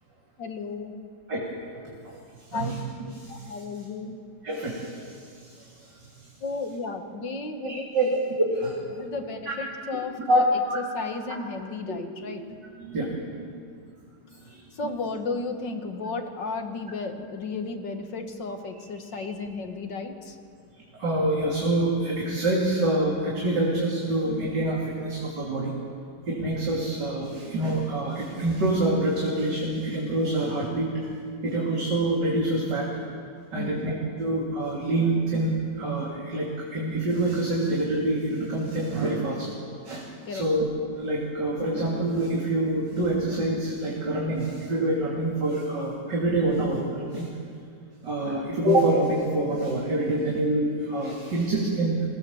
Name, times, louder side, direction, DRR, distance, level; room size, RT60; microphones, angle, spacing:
voice 1, 0.4-0.9 2.5-2.7 3.3-4.1 6.4-8.1 9.0-10.4 10.9-12.4 14.8-20.4 33.5-33.8 40.3-40.5, left 4 dB, 85° left, 5 dB, 2.3 m, -34 dB
voice 2, 1.7-2.8 3.1-3.9 4.4-6.3 7.6-8.8 9.5-9.6 10.3-10.8 12.8-13.1 13.4-13.5 14.5-14.9 19.1-19.2 21.0-25.7 26.3-30.9 31.4-32.9 33.5-39.5 39.8-40.7 41.0-47.3 48.0-52.0, right 1 dB, 75° right, -4 dB, 3.6 m, -26 dB
23.5 x 18.5 x 7.2 m, 2.2 s
omnidirectional pair, 1.9 m